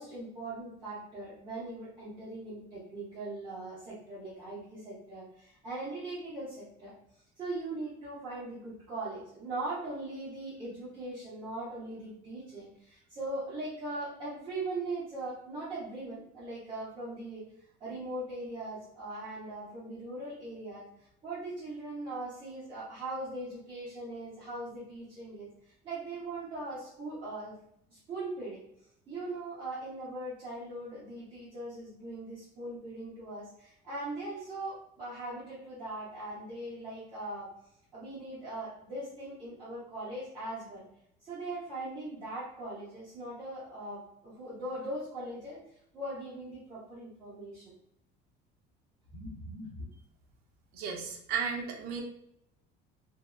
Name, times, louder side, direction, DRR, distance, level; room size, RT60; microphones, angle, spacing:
voice 1, 0.0-6.9 7.4-17.4 17.8-20.9 21.2-25.5 25.8-27.5 27.9-28.6 29.1-37.5 37.9-40.8 41.2-45.6 45.9-47.6 49.1-49.7, right 2 dB, 25° right, -11 dB, 0.8 m, -40 dB
voice 2, 50.7-52.0, right 6 dB, 50° right, 2 dB, 0.5 m, -34 dB
2.6 x 2.1 x 2.3 m, 0.74 s
cardioid pair, 170°, 20 cm